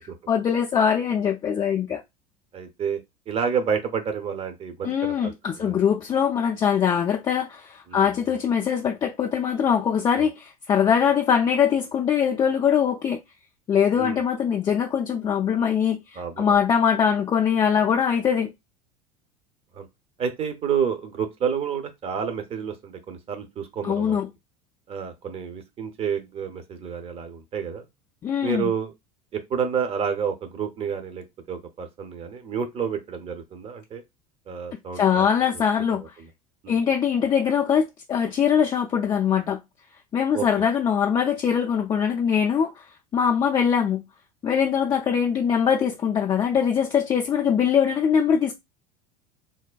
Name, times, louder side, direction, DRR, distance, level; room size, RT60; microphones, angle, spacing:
voice 1, 0.3-2.0 4.8-13.2 13.7-18.5 23.8-24.3 28.2-28.7 34.9-36.0 36.7-39.6 40.1-42.8 43.1-44.0 44.4-48.5, left 7 dB, 25° left, 0.4 m, -22 dB
voice 2, 2.5-3.0 3.3-5.3 5.6-5.8 7.9-8.1 10.1-10.3 14.0-14.2 16.2-16.6 19.7-19.9 20.2-24.2 24.9-27.9 28.4-28.9 29.3-34.0 34.5-35.3 35.5-35.6 36.6-36.8 40.3-40.4, right 7 dB, 30° right, 0.7 m, -29 dB
3.4 x 2.1 x 2.3 m
figure-of-eight pair, 75°, 19 cm